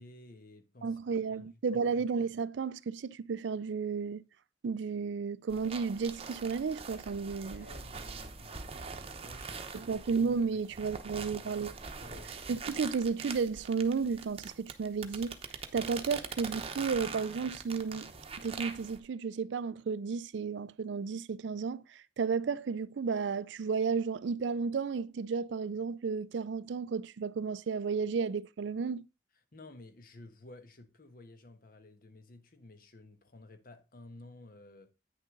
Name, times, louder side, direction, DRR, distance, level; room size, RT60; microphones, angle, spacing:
voice 1, 0.0-1.5 7.5-9.9 10.5-11.7 12.0-12.4 29.5-34.9, left 2 dB, 50° left, 1.3 m, -54 dB
voice 2, 0.8-4.2 4.6-7.7 9.7-11.7 12.5-15.4 15.7-18.1 18.4-29.0, right 5 dB, 70° right, 0.4 m, -33 dB
sound 1, 5.5-19.0, right 5 dB, 30° right, 0.9 m, -43 dB
9.3 x 6.5 x 3.8 m
head